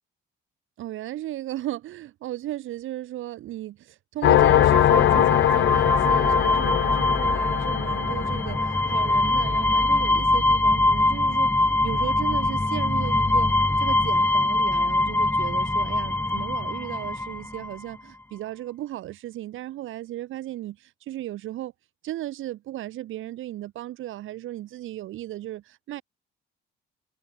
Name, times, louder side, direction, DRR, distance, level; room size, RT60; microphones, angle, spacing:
voice 1, 0.8-21.7 22.0-26.0, right 14 dB, 85° right, 2.7 m, -35 dB
sound 1, 4.2-9.6, left 13 dB, 70° left, 0.6 m, -22 dB
sound 2, 4.4-17.8, left 2 dB, 10° left, 1.1 m, -23 dB
cardioid pair, 90°, 20 cm